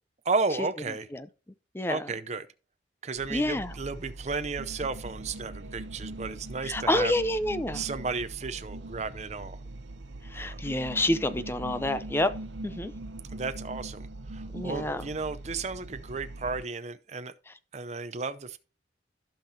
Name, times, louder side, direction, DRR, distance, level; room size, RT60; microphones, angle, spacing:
voice 1, 0.2-1.1 1.9-2.5 3.0-7.1 7.7-9.6 10.3-10.6 13.3-17.3 17.7-18.6, right 4 dB, 35° right, 0.6 m, -33 dB
voice 2, 1.7-2.1 3.3-3.7 6.6-7.8 10.3-12.3 12.6-12.9 14.5-15.0, left 1 dB, 15° left, 0.5 m, -28 dB
sound 1, 3.2-16.7, right 2 dB, 80° right, 0.8 m, -41 dB
15.0 x 5.7 x 2.8 m
head